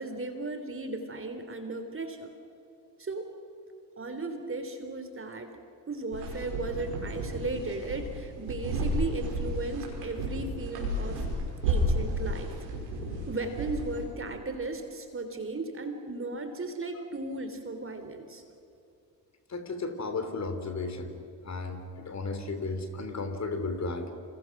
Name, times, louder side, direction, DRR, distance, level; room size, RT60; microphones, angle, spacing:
voice 1, 0.0-2.3 3.0-3.3 4.0-5.5 5.9-11.3 11.6-12.5 13.3-18.4, right 3 dB, 25° right, 7 dB, 3.3 m, -36 dB
sound 1, 6.1-14.0, right 1 dB, 70° right, 5.9 m, -32 dB
voice 2, 19.5-21.1 21.4-24.1, left 3 dB, 35° left, 7 dB, 3.3 m, -34 dB
28.5 x 28.5 x 6.0 m, 2.6 s
figure-of-eight pair, 50°, 48 cm